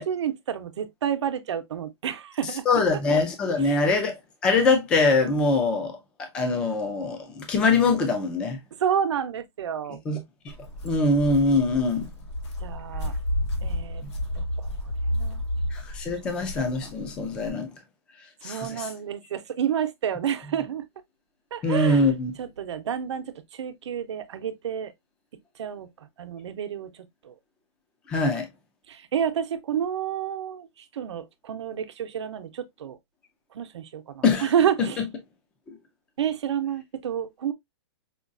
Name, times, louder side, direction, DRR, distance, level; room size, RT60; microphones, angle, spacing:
voice 1, 0.0-2.7 3.6-3.8 8.8-10.0 12.6-13.2 13.6-14.0 14.4-14.7 15.0-15.4 16.3-16.4 18.4-20.8 21.5-23.3 23.5-24.9 25.6-25.9 26.2-26.9 27.2-27.3 28.9-30.7 30.9-33.0 33.5-35.0 36.2-37.5, right 9 dB, 85° right, 0.7 m, -29 dB
voice 2, 2.7-4.2 4.4-8.6 10.1-10.2 10.8-12.1 15.7-17.7 18.4-18.9 21.6-22.3 28.1-28.5 34.2-34.5, left 3 dB, 5° left, 0.3 m, -23 dB
Walk footsteps, 10.5-17.5, left 1 dB, 90° left, 1.7 m, -31 dB
5.0 x 2.3 x 2.4 m
hypercardioid pair, 175°, 14 cm